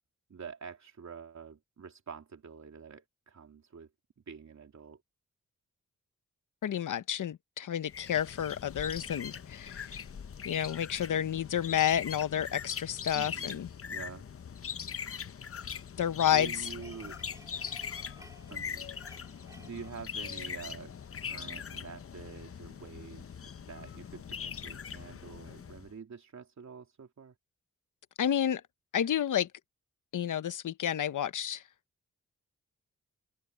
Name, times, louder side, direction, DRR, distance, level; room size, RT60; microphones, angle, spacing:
voice 1, 0.3-3.9 4.3-5.0 13.1-13.6 13.9-14.2 16.3-17.2 18.5-18.9 19.6-20.9 21.2-27.3, right 6 dB, 60° right, 3.1 m, -47 dB
voice 2, 6.6-10.0 10.4-13.7 16.0-16.7 28.2-28.6 28.9-29.5 30.1-31.6, left 10 dB, 80° left, 0.9 m, -30 dB
sound 1, 7.9-25.9, left 7 dB, 45° left, 0.7 m, -41 dB
sound 2, 15.3-20.8, right 1 dB, 10° right, 3.6 m, -58 dB
open air
wide cardioid pair, 85°, 30 cm